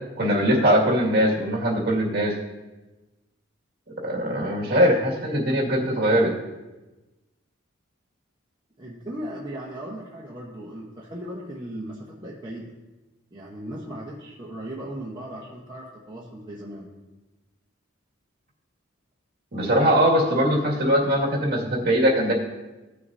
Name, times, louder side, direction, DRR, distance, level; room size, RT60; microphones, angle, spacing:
voice 1, 0.2-2.3 4.0-6.3 19.5-22.3, equal, 50° right, -3 dB, 2.1 m, -21 dB
voice 2, 8.8-12.7 13.3-16.9, right 1 dB, 20° right, -5 dB, 1.1 m, -37 dB
16.0 x 6.6 x 2.7 m, 1.1 s
head